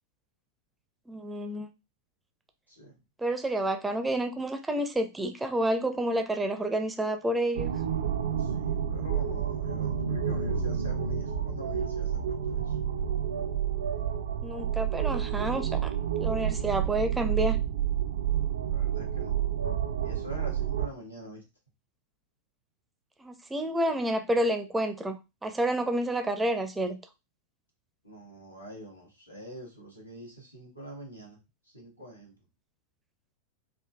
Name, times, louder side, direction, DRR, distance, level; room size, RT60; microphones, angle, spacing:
voice 1, 1.1-1.7 3.2-7.7 14.4-15.9 16.2-17.6 23.2-27.0, right 1 dB, 10° right, 0.5 m, -29 dB
sound 1, 7.5-20.9, right 8 dB, 65° right, 0.4 m, -29 dB
voice 2, 8.4-12.8 18.7-19.4 20.0-21.4 28.0-31.4 31.7-32.3, equal, 90° left, 1.2 m, -45 dB
3.6 x 2.5 x 2.3 m
figure-of-eight pair, 90°, 0 cm